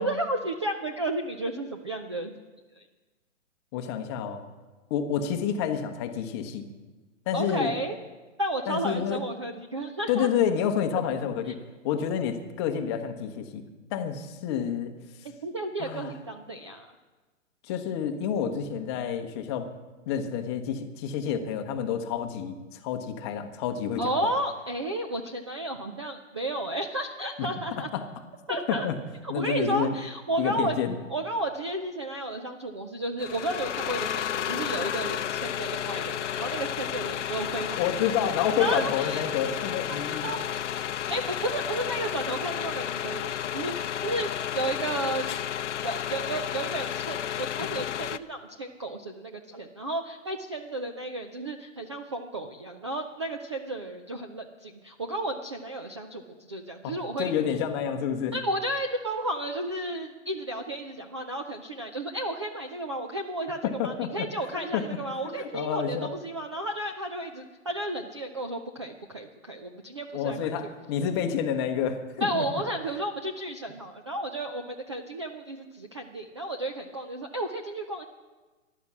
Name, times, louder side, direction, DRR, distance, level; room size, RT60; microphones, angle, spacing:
voice 1, 0.0-2.4 7.3-8.0 8.4-10.3 15.2-16.9 24.0-27.9 28.5-28.9 29.2-30.8 31.1-37.8 38.6-39.2 40.2-40.4 41.1-45.2 45.8-57.3 58.3-70.7 72.2-78.0, right 1 dB, 25° right, 4 dB, 0.4 m, -32 dB
voice 2, 3.7-4.4 4.9-6.7 7.3-7.8 8.7-9.2 10.1-11.6 11.8-13.6 13.9-14.9 15.8-16.1 17.7-19.7 20.1-24.3 27.4-27.5 27.8-28.0 28.5-29.0 29.3-29.9 30.4-30.9 37.8-40.3 56.8-58.4 63.6-64.3 64.7-64.8 65.4-66.1 70.1-72.6, left 8 dB, 20° left, 6 dB, 0.9 m, -29 dB
sound 1, 33.2-48.2, left 10 dB, 65° left, 0.7 m, -32 dB
14.5 x 11.0 x 6.1 m, 1.3 s
hypercardioid pair, 150°, 39 cm